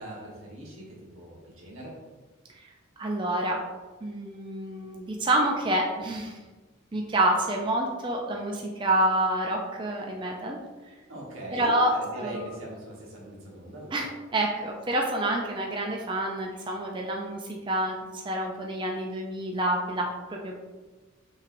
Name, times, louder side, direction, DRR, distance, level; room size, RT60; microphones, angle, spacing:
voice 1, 0.0-1.9 11.1-14.0, right 1 dB, 90° right, -3 dB, 1.3 m, -40 dB
voice 2, 3.0-3.6 4.0-6.4 6.9-10.6 11.5-12.4 13.9-20.6, right 1 dB, 25° right, 0 dB, 0.4 m, -28 dB
5.5 x 3.2 x 2.5 m, 1.3 s
head